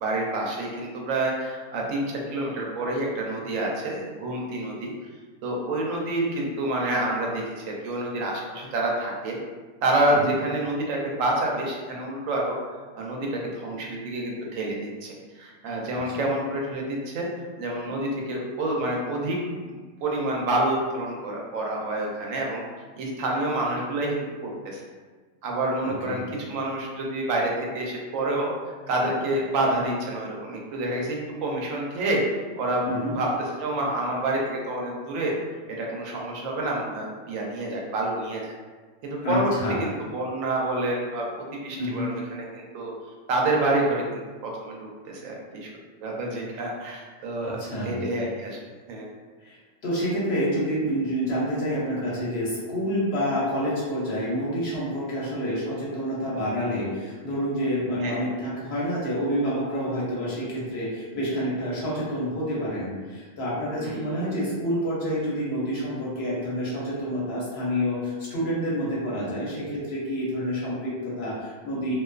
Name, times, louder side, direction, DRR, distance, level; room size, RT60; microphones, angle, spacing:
voice 1, 0.0-4.9 5.4-9.4 9.8-12.6 12.9-17.3 17.6-19.7 20.0-22.6 22.9-24.8 25.4-26.2 26.5-32.2 32.6-35.3 35.7-38.5 39.0-39.5 39.8-42.9 43.3-45.7 46.0-48.6 48.9-49.1 58.0-58.3 63.8-64.3, right 1 dB, 90° right, -1 dB, 1.0 m, -28 dB
voice 2, 25.8-26.2 32.9-33.1 39.2-39.8 41.8-42.1 47.4-47.9 49.4-49.6 49.8-71.9, equal, 60° left, -6 dB, 0.9 m, -28 dB
2.5 x 2.3 x 2.3 m, 1.4 s
omnidirectional pair, 1.3 m